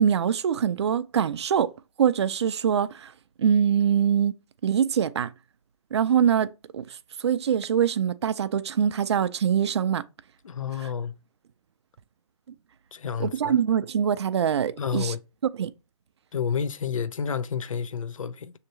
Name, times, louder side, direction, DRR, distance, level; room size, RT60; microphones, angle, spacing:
voice 1, 0.0-1.7 2.0-3.1 3.4-4.3 4.6-5.3 5.9-6.8 7.2-10.0 13.2-15.1 15.6-15.7, right 8 dB, 55° right, 0.4 m, -23 dB
voice 2, 10.4-11.1 12.9-13.6 14.8-15.2 16.3-18.5, left 7 dB, 75° left, 0.5 m, -30 dB
6.5 x 2.8 x 2.7 m
figure-of-eight pair, 140°, 17 cm